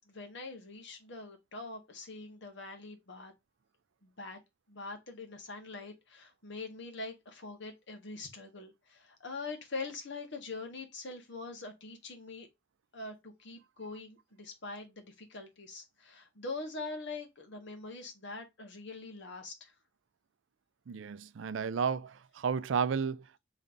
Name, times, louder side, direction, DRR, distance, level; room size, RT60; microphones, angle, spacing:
voice 1, 0.0-3.3 4.0-4.4 4.7-12.5 12.9-19.7, left 3 dB, 65° left, 1.4 m, -43 dB
voice 2, 20.9-23.4, right 6 dB, 70° right, 0.4 m, -32 dB
5.2 x 3.2 x 2.6 m
head